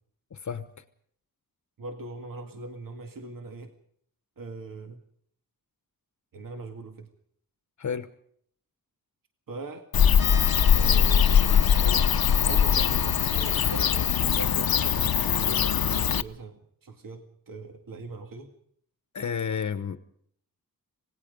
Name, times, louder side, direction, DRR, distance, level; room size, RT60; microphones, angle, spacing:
voice 1, 0.3-0.8 7.8-8.1 19.1-20.0, left 6 dB, 50° left, 11 dB, 1.0 m, -31 dB
voice 2, 1.8-3.7 4.4-5.0 6.3-7.1 9.5-9.9 10.7-12.1 12.4-18.5, right 3 dB, 65° right, 5 dB, 2.1 m, -40 dB
Bird / Cricket, 9.9-16.2, left 8 dB, 75° left, 0.8 m, -22 dB
sound 1, 10.1-14.2, left 3 dB, 30° left, 1.1 m, -41 dB
26.5 x 19.0 x 5.3 m, 0.64 s
wide cardioid pair, 165°, 36 cm